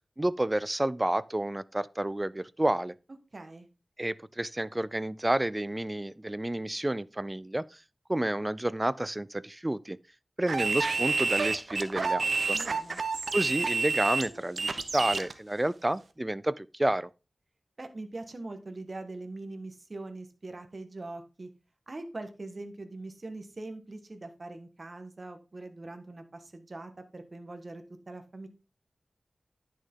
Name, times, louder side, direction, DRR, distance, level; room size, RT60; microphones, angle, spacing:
voice 1, 0.2-2.9 4.0-7.8 8.1-10.0 10.4-12.6 13.3-17.1, right 1 dB, 20° right, 0.4 m, -30 dB
voice 2, 3.3-3.7 12.5-13.0 17.8-21.5 21.9-28.5, right 2 dB, 45° right, 1.5 m, -42 dB
sound 1, 10.5-15.3, right 4 dB, 70° right, 0.9 m, -29 dB
10.5 x 6.4 x 3.7 m
wide cardioid pair, 70°, 0 cm